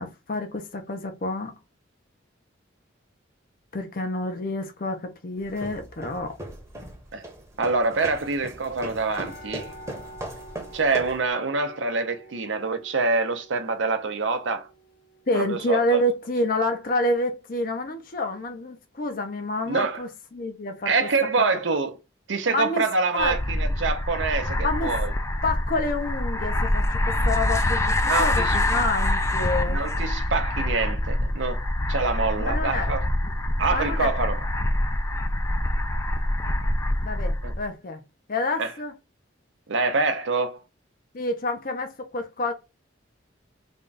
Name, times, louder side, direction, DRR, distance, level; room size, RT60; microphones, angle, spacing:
voice 1, 0.0-1.5 3.7-6.3 15.3-20.9 22.5-22.8 23.1-23.4 24.6-24.9 25.4-29.8 32.4-32.9 33.2-33.3 33.7-34.1 37.0-38.0 38.3-38.9 41.1-42.5, left 1 dB, 45° left, 0.6 m, -28 dB
sound 1, 5.4-11.3, right 1 dB, 15° right, 0.9 m, -39 dB
sound 2, 7.5-7.6 7.8-15.4 15.8-15.9, equal, 65° left, 1.3 m, -48 dB
voice 2, 7.6-9.7 10.7-14.7 15.3-16.0 19.7-20.0 20.9-22.0 22.3-25.1 28.0-28.6 29.7-31.6 31.9-33.1 33.6-34.4 37.4-37.5 38.6-38.7 39.7-40.6, right 4 dB, 75° right, 0.6 m, -26 dB
sound 3, 23.2-37.7, left 1 dB, 15° left, 0.3 m, -25 dB
3.5 x 2.3 x 3.9 m
head